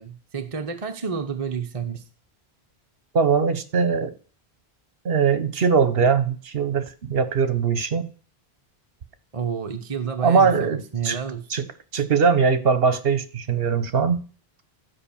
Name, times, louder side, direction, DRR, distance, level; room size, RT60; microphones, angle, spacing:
voice 1, 0.0-2.0 9.3-11.5, right 6 dB, 35° right, 0.9 m, -30 dB
voice 2, 3.1-4.1 5.0-8.1 10.2-10.8 11.0-11.2 11.5-11.6 11.9-14.2, right 5 dB, 65° right, 1.2 m, -21 dB
13.0 x 5.2 x 7.2 m
omnidirectional pair, 1.0 m